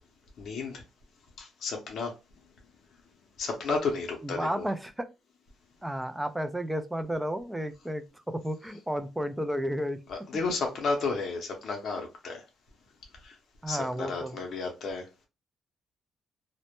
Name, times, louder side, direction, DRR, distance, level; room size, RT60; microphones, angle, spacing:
voice 1, 0.4-0.8 1.4-2.1 3.4-4.6 10.1-12.4 13.2-13.3 13.7-15.3, left 4 dB, 60° left, 0.6 m, -32 dB
voice 2, 4.2-5.1 5.8-10.0 13.6-14.4, equal, 5° right, 0.3 m, -32 dB
2.1 x 2.0 x 2.9 m
cardioid pair, 90°, 0 cm